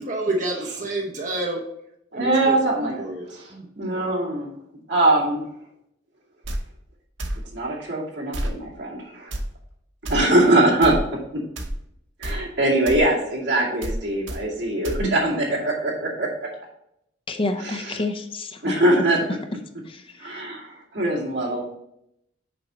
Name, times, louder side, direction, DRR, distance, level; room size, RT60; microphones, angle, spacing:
voice 1, 0.0-1.6 2.1-2.6 2.8-4.0, right 2 dB, 40° right, -1 dB, 1.0 m, -29 dB
voice 2, 2.1-3.0 3.8-4.5 4.9-5.4 7.5-9.3 10.1-11.0 12.2-16.5 17.6-18.0 18.6-19.3 20.2-21.6, right 1 dB, 70° right, -3 dB, 2.2 m, -22 dB
sound 1, 6.4-6.6 7.2-7.4 8.3-8.6 9.3-9.4 10.0-10.2 10.8-11.0 11.6-11.8 12.2-12.4 12.9-13.0 13.8-14.0 14.3-14.4 14.8-15.0, right 1 dB, 85° right, 1.0 m, -28 dB
voice 3, 17.3-18.7 19.9-20.4, left 2 dB, 30° left, 7 dB, 0.5 m, -29 dB
6.8 x 5.1 x 4.3 m, 0.76 s
head